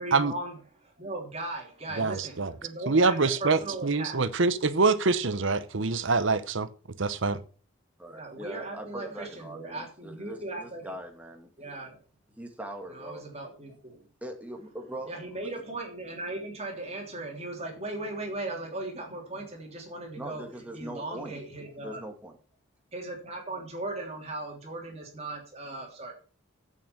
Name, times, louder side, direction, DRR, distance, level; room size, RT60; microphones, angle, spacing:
voice 1, 0.0-4.2 8.1-11.0 11.6-12.0 12.9-14.1 15.0-22.0 22.9-26.1, right 2 dB, 30° right, 0 dB, 3.2 m, -38 dB
voice 2, 2.0-2.5 2.9-6.7 7.0-7.4, right 3 dB, 60° right, 14 dB, 0.8 m, -25 dB
voice 3, 8.0-11.7 12.4-13.2 14.2-15.1 20.1-21.4 21.8-22.4, right 1 dB, 5° right, 3 dB, 1.9 m, -41 dB
8.9 x 7.0 x 7.1 m, 0.39 s
head